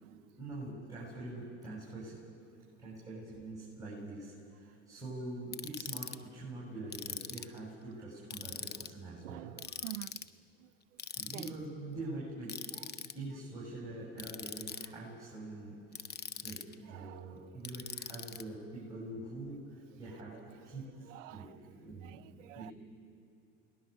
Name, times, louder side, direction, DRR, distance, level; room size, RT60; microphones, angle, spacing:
voice 1, 0.1-2.2 2.8-9.5 11.1-12.6 13.1-16.1 16.4-20.3 20.6-22.2 22.5-22.7, right 2 dB, 10° right, 7.9 m, -44 dB
Ratchet pawl, 5.5-6.2 6.9-7.6 8.3-8.9 9.6-10.3 11.0-11.5 12.5-13.1 14.2-14.9 15.9-16.7 17.6-18.4, left 7 dB, 25° left, 0.9 m, -42 dB
voice 2, 9.2-10.3 10.6-10.7 11.3-11.6 12.8-12.9 16.9-17.4 20.3-20.7 21.0-21.6 22.0-22.7, right 18 dB, 90° right, 0.5 m, -48 dB
28.5 x 20.0 x 6.8 m
hypercardioid pair, 85°, 37 cm